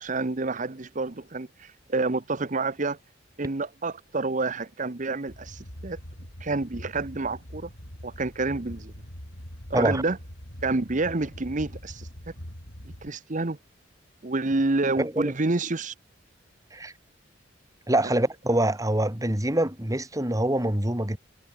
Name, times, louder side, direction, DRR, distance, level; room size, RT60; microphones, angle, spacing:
voice 1, 0.0-3.0 3.4-6.0 6.4-7.7 8.0-8.9 9.7-10.2 10.6-12.1 13.0-13.6 14.2-15.9, right 3 dB, 45° right, 1.0 m, -28 dB
sound 1, 5.3-13.1, equal, 75° left, 6.1 m, -43 dB
voice 2, 15.0-15.3 16.7-16.9 17.9-21.2, right 1 dB, 20° right, 2.8 m, -25 dB
head